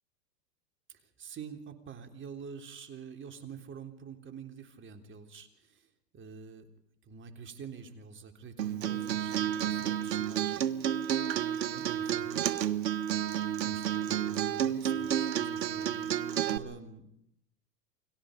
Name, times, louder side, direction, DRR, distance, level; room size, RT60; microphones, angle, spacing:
voice 1, 1.0-5.9 6.1-6.7 7.0-10.9 11.7-12.8 13.1-13.3 13.6-17.1, right 6 dB, 25° right, 6 dB, 3.6 m, -47 dB
Acoustic guitar, 8.6-16.6, right 10 dB, 80° right, 1.5 m, -31 dB
30.0 x 23.5 x 5.3 m, 0.77 s
hypercardioid pair, 115°, 49 cm